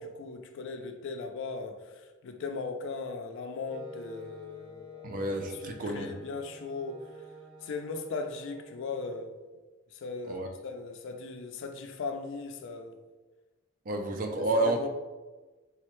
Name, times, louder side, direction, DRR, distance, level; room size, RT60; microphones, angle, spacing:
voice 1, 0.0-5.1 5.6-7.0 7.6-9.3 9.9-13.0 14.4-14.9, left 4 dB, 65° left, 6 dB, 0.3 m, -38 dB
Wind instrument woodwind instrument, 3.7-9.3, right 1 dB, 80° right, 1.3 m, -50 dB
voice 2, 5.0-6.1 10.3-10.5 13.9-14.8, right 2 dB, 40° right, 4 dB, 0.4 m, -30 dB
3.7 x 2.1 x 3.0 m, 1.2 s
head